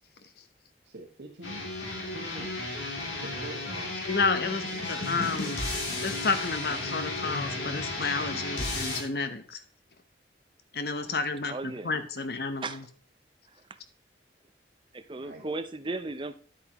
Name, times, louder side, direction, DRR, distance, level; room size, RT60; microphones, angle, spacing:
voice 1, 0.8-1.6 1.9-2.5 3.2-3.9 10.9-11.4 11.8-11.9 15.2-15.4, right 2 dB, 80° right, -3 dB, 1.6 m, -45 dB
sound 1, 1.4-9.0, left 2 dB, 80° left, 2.9 m, -33 dB
voice 2, 4.1-5.6 6.0-9.6 10.7-12.8, left 4 dB, 55° left, 10 dB, 0.9 m, -31 dB
voice 3, 11.5-11.9 12.6-12.8 14.9-16.4, right 2 dB, 25° right, 11 dB, 0.6 m, -35 dB
10.0 x 8.3 x 3.0 m, 0.44 s
head